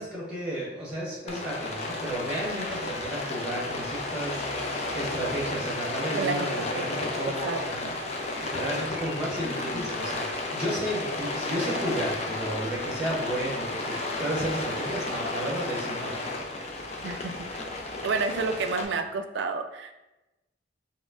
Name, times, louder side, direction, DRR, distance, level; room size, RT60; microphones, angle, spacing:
voice 1, 0.0-7.9 8.4-16.1, right 1 dB, 5° right, -7 dB, 1.2 m, -33 dB
Rain, 1.3-18.9, left 2 dB, 35° left, 0.4 m, -33 dB
voice 2, 6.1-6.9 7.4-7.9 17.0-17.3 18.0-19.9, right 4 dB, 70° right, 7 dB, 0.3 m, -30 dB
5.0 x 2.1 x 2.5 m, 1.0 s
head